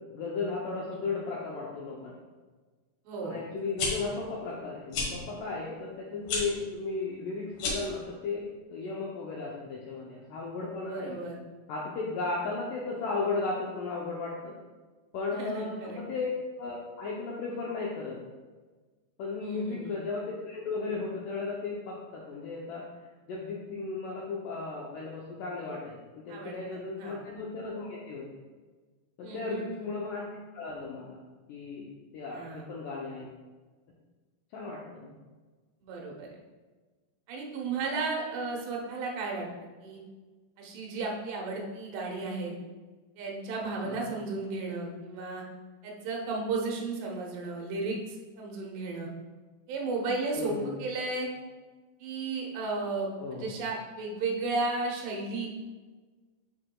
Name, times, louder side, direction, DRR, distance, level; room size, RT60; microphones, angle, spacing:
voice 1, 0.1-2.1 3.2-11.2 11.7-14.5 15.1-16.3 16.6-18.2 19.2-22.8 23.3-28.3 29.2-30.3 30.5-31.2 31.5-31.9 32.1-33.3 34.5-35.2 43.8-44.1 50.4-50.8 53.2-53.6, left 3 dB, 80° left, -3 dB, 1.9 m, -35 dB
voice 2, 3.1-3.4 10.9-11.4 15.3-16.0 19.4-20.0 26.3-26.6 27.0-27.2 29.2-29.6 32.3-32.6 35.8-36.4 37.3-39.5 39.8-40.0 40.6-42.5 43.2-45.4 45.8-49.1 49.7-51.3 52.0-55.6, right 3 dB, 90° right, -1 dB, 3.2 m, -34 dB
sound 1, 3.6-3.9 4.9-5.1 6.2-6.4 7.5-7.9, left 4 dB, 65° left, 2.9 m, -30 dB
9.7 x 4.7 x 2.3 m, 1.3 s
omnidirectional pair, 4.7 m